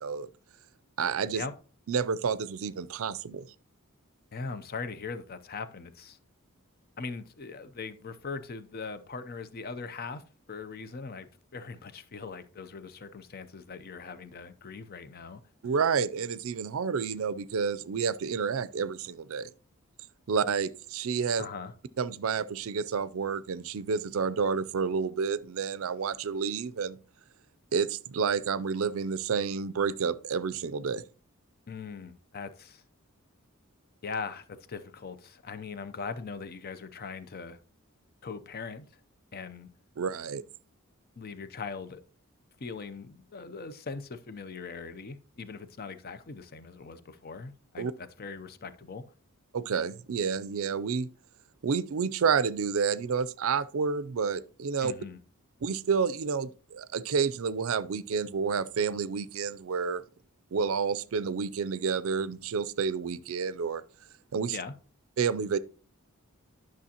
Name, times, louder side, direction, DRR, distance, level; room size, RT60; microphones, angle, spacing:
voice 1, 1.0-1.4 1.9-3.5 15.6-19.5 20.3-21.5 22.0-27.0 27.7-31.0 40.0-40.4 47.8-47.9 49.5-51.1 51.6-54.9 55.6-60.0 60.5-63.8 64.3-64.6 65.2-65.6, right 6 dB, 65° right, 0.4 m, -29 dB
voice 2, 4.3-6.2 7.0-15.4 21.4-21.7 31.7-32.8 34.0-37.6 38.2-38.9 39.3-39.7 41.2-42.0 42.6-49.0 54.8-55.2 64.5-64.7, left 4 dB, 45° left, 0.6 m, -40 dB
11.0 x 6.1 x 2.9 m
head